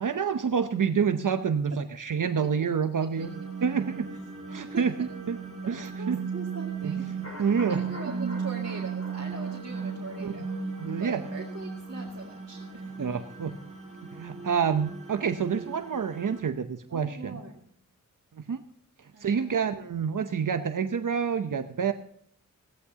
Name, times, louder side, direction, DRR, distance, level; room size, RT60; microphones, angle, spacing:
voice 1, 0.0-3.3 3.6-4.1 4.5-5.4 5.7-6.2 6.8-7.0 7.4-7.8 8.1-8.4 10.2-10.5 10.8-11.2 13.0-13.5 14.1-17.4 18.5-18.6 19.2-21.9, right 6 dB, 65° right, 8 dB, 0.8 m, -28 dB
sound 1, 3.2-16.4, right 5 dB, 20° right, 5.0 m, -36 dB
voice 2, 4.6-5.1 5.6-7.2 7.7-10.7 11.0-13.1 16.9-17.7 19.1-19.8, right 3 dB, 50° right, -1 dB, 2.1 m, -42 dB
sound 2, 7.2-13.1 13.4-13.5, equal, 50° left, 4.9 m, -48 dB
17.0 x 14.0 x 2.9 m, 0.64 s
wide cardioid pair, 80°, 33 cm